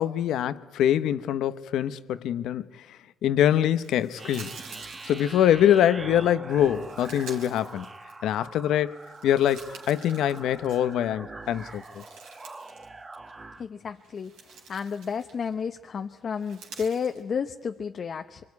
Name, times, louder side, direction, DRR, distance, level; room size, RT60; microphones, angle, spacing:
voice 1, 0.0-4.5 5.1-7.9 8.2-9.0 9.2-12.0, left 10 dB, 80° left, 0.8 m, -24 dB
sound 1, 3.8-5.8 6.5-8.5 8.9-11.1 11.4-12.9 13.1-13.3 13.9-15.6 16.3-17.2, right 5 dB, 90° right, 3.9 m, -48 dB
sound 2, 4.1-13.6, right 3 dB, 25° right, 1.6 m, -43 dB
voice 2, 13.6-18.4, left 6 dB, 50° left, 0.8 m, -32 dB
24.5 x 24.0 x 9.5 m
cardioid pair, 90°, 0 cm